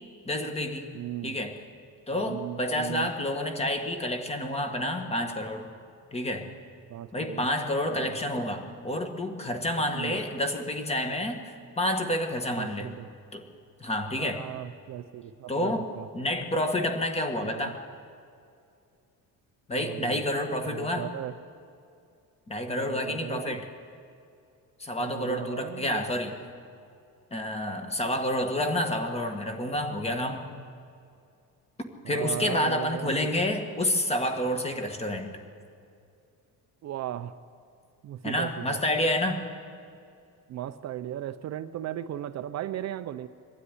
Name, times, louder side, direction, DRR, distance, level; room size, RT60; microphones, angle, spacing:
voice 1, 0.2-0.9 1.2-1.6 2.1-5.7 6.1-6.5 7.1-12.9 13.3-13.4 13.8-14.4 15.5-15.9 16.1-17.8 19.7-21.1 22.5-23.7 24.8-26.4 27.3-30.5 32.1-35.3 38.2-39.4, left 1 dB, 15° left, 5 dB, 1.7 m, -29 dB
voice 2, 0.9-1.4 2.1-3.1 6.9-7.5 7.9-8.2 9.9-10.2 12.6-13.1 14.2-16.1 17.4-17.7 19.7-20.2 20.7-21.3 22.7-23.6 25.0-26.2 32.0-33.4 36.8-37.4 38.0-38.8 40.5-43.3, right 12 dB, 45° right, 10 dB, 0.6 m, -37 dB
22.0 x 13.0 x 9.8 m, 2.5 s
cardioid pair, 160°, 37 cm